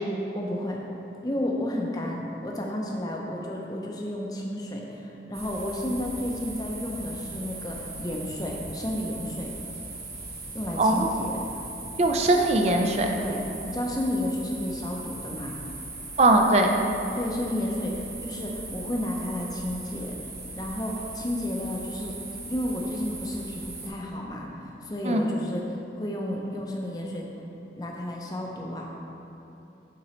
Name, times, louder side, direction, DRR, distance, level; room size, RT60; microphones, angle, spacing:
voice 1, 0.3-0.8 1.2-9.5 10.5-11.6 13.2-15.6 17.1-20.2 20.5-22.2 22.5-27.3 27.8-28.9, left 1 dB, 20° left, -1 dB, 0.6 m, -32 dB
sound 1, 5.3-23.9, right 3 dB, 60° right, 1.1 m, -39 dB
voice 2, 10.8-11.1 12.0-13.1 16.2-16.7 25.0-25.3, right 2 dB, 35° right, 3 dB, 0.4 m, -20 dB
8.5 x 3.9 x 3.1 m, 2.9 s
head